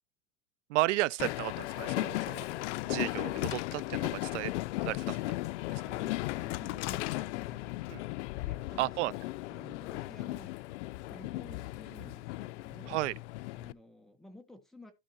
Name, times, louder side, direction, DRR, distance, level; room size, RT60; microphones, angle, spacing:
voice 1, 0.7-2.5 2.9-4.5 4.8-5.2 5.7-5.8 7.9-8.0 8.8-9.1 12.9-13.1, right 18 dB, 90° right, 0.5 m, -33 dB
Train, 1.2-13.7, left 19 dB, 80° left, 0.5 m, -36 dB
voice 2, 8.4-9.2 9.5-10.5 11.1-13.0 13.5-14.9, left 1 dB, ahead, 1.4 m, -53 dB
12.5 x 4.7 x 4.3 m
supercardioid pair, 145°, 34 cm